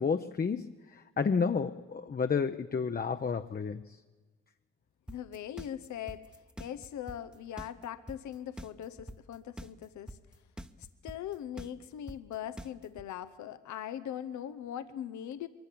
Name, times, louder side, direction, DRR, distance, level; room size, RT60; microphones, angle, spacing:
voice 1, 0.0-3.8, left 5 dB, 30° left, 8 dB, 0.7 m, -31 dB
voice 2, 5.1-10.2 10.8-15.5, left 10 dB, 75° left, 13 dB, 0.7 m, -41 dB
sound 1, 5.1-13.0, equal, 5° right, 0.9 m, -44 dB
22.5 x 14.0 x 8.5 m, 1.4 s
supercardioid pair, 60°, 29 cm